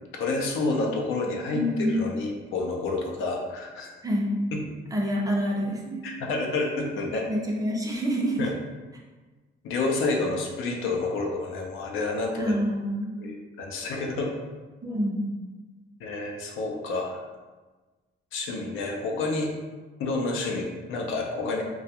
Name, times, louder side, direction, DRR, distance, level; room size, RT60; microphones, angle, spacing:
voice 1, 0.1-3.9 4.5-4.6 6.0-7.3 8.4-8.5 9.6-12.5 13.2-14.3 16.0-17.3 18.3-19.5 20.0-21.6, left 3 dB, 85° left, 0 dB, 0.5 m, -29 dB
voice 2, 1.5-2.1 4.0-4.4 4.9-6.0 7.3-8.4 12.3-13.1 14.8-15.3, equal, 20° right, -2 dB, 0.5 m, -27 dB
2.3 x 2.2 x 2.7 m, 1.3 s
cardioid pair, 90°, 20 cm